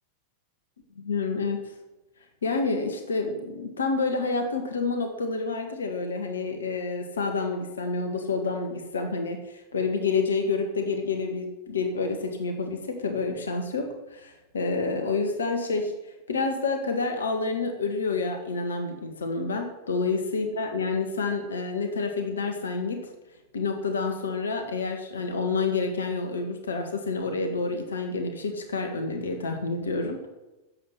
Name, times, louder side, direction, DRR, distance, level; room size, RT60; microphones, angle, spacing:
voice 1, 1.0-1.7 2.4-15.9 16.3-23.1 23.5-30.3, left 4 dB, 70° left, 5 dB, 1.8 m, -28 dB
11.0 x 7.8 x 8.3 m, 1.0 s
figure-of-eight pair, 90°, 0 cm